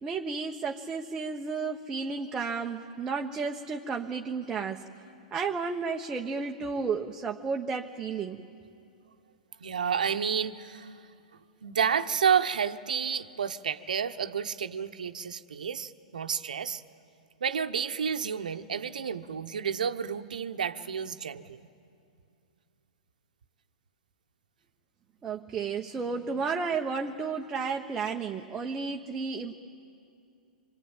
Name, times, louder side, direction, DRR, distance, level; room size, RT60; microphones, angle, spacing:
voice 1, 0.0-4.8 5.3-8.4 25.2-29.5, right 5 dB, 15° right, 1 dB, 1.1 m, -32 dB
voice 2, 9.6-10.9 11.6-16.8 17.4-21.7, right 7 dB, 85° right, 9 dB, 1.2 m, -30 dB
26.0 x 24.5 x 9.1 m, 2.5 s
hypercardioid pair, 125°, 4 cm